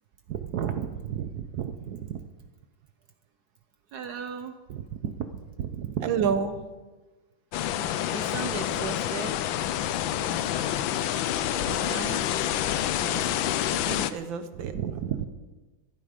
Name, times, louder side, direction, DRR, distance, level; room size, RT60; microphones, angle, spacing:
voice 1, 0.3-2.2 3.9-6.1 8.1-9.4 14.5-15.3, right 8 dB, 65° right, 7 dB, 1.2 m, -34 dB
voice 2, 6.0-6.6 11.7-12.3 13.0-13.2 13.6-14.7, right 6 dB, 85° right, 10 dB, 1.7 m, -30 dB
sound 1, 7.5-14.1, left 11 dB, 90° left, 1.4 m, -28 dB
13.5 x 11.5 x 5.1 m, 1.2 s
omnidirectional pair, 2.1 m